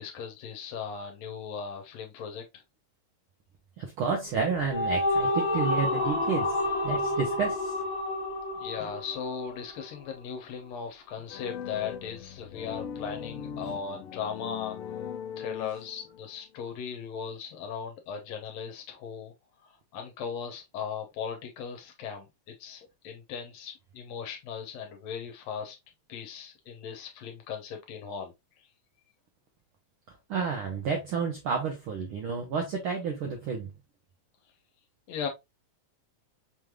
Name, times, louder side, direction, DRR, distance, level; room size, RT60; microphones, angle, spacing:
voice 1, 0.0-2.4 8.5-14.8 15.4-19.3 19.6-22.3 22.6-25.8 26.1-28.3 35.1-35.3, left 6 dB, 70° left, 1.9 m, -38 dB
voice 2, 3.8-7.7 30.1-33.7, right 5 dB, 75° right, 1.2 m, -31 dB
sound 1, 4.3-9.8, left 2 dB, 50° left, 1.3 m, -29 dB
sound 2, 11.3-16.2, left 8 dB, 90° left, 1.2 m, -39 dB
5.4 x 3.2 x 2.2 m
omnidirectional pair, 3.3 m